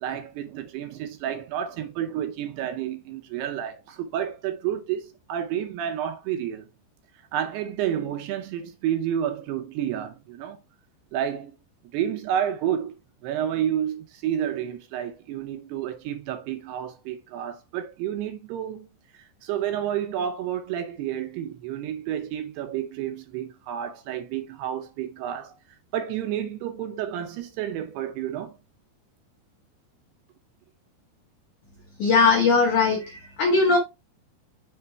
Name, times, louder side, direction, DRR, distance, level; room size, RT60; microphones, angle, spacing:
voice 1, 0.0-6.7 7.3-10.6 11.1-11.6 11.9-12.9 13.2-18.9 19.1-25.6 25.9-28.6, right 10 dB, 80° right, 2.5 m, -30 dB
voice 2, 32.0-33.8, left 4 dB, 90° left, 1.7 m, -20 dB
6.8 x 3.1 x 4.5 m
omnidirectional pair, 5.2 m